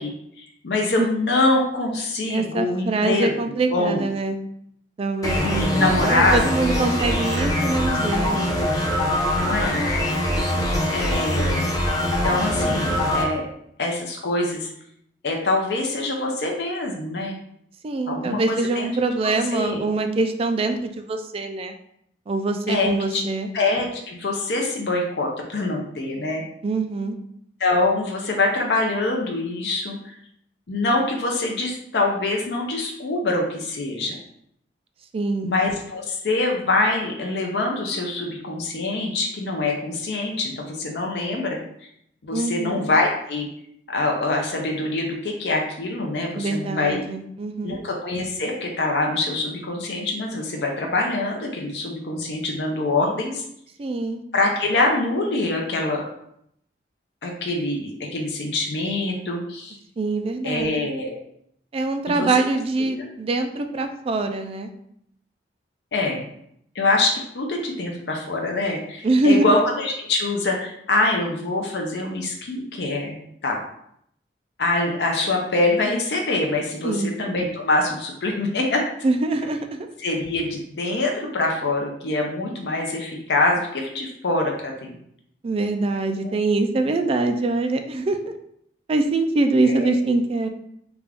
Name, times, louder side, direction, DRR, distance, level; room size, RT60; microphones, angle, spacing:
voice 1, 0.0-3.3 3.7-4.1 5.4-6.5 9.3-9.8 10.9-11.7 12.0-13.5 13.8-14.7 15.2-17.4 18.1-18.9 19.2-19.8 22.7-23.2 23.5-26.4 27.6-30.1 30.7-34.2 35.4-41.6 42.2-43.5 43.9-47.0 47.6-53.4 54.3-56.0 57.2-59.8 60.4-61.2 62.1-62.3 62.9-63.1 65.9-66.3 66.7-73.6 74.6-78.8 80.0-85.0 86.2-86.3 89.6-89.9, left 2 dB, 70° left, 1 dB, 0.6 m, -24 dB
voice 2, 2.3-4.4 5.0-8.5 17.8-21.7 22.3-23.5 26.6-27.2 35.1-35.5 42.3-42.8 46.3-47.8 53.8-54.2 60.0-60.9 61.7-64.7 69.0-69.5 76.8-77.1 79.0-79.9 85.4-88.3 88.9-90.5, right 2 dB, 35° right, 6 dB, 0.3 m, -24 dB
sound 1, 5.2-13.2, left 1 dB, 20° left, 0.7 m, -23 dB
3.4 x 2.4 x 3.4 m, 0.72 s
head